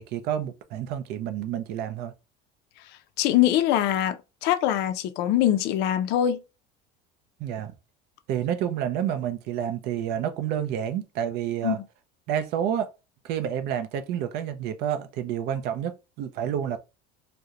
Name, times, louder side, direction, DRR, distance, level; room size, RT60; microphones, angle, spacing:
voice 1, 0.0-2.1 7.4-7.7 8.3-11.8 12.3-12.9 13.2-16.8, right 9 dB, 50° right, 0.4 m, -29 dB
voice 2, 3.2-6.4 11.6-11.8, left 12 dB, 55° left, 0.4 m, -23 dB
2.4 x 2.1 x 2.7 m
cardioid pair, 145°, 21 cm